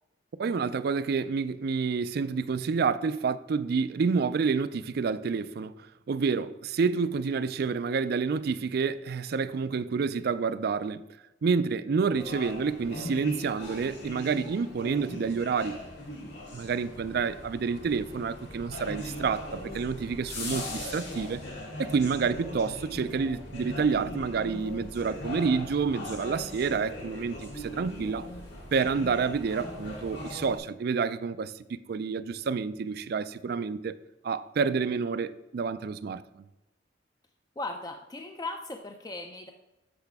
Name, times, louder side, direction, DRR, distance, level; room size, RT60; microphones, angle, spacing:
voice 1, 0.4-5.7 6.1-11.0 11.4-15.8 16.5-21.4 21.8-28.3 28.7-31.5 31.9-33.9 34.2-36.4, right 5 dB, 55° right, 0.3 m, -29 dB
sound 1, 12.1-30.6, left 1 dB, 65° left, 2.0 m, -40 dB
voice 2, 37.6-39.5, left 2 dB, 20° left, 0.4 m, -37 dB
8.0 x 5.7 x 3.4 m
head